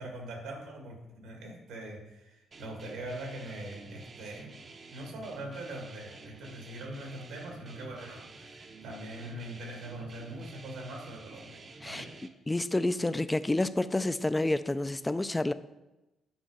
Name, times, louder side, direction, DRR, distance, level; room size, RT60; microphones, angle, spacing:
voice 1, 0.0-4.5 4.9-12.1, right 1 dB, 90° right, 1 dB, 1.9 m, -42 dB
sound 1, 2.5-12.3, right 3 dB, 40° right, 0.7 m, -49 dB
voice 2, 12.5-15.5, left 2 dB, 15° left, 13 dB, 0.4 m, -29 dB
7.9 x 5.2 x 4.9 m, 1.0 s
cardioid pair, 100°, 0 cm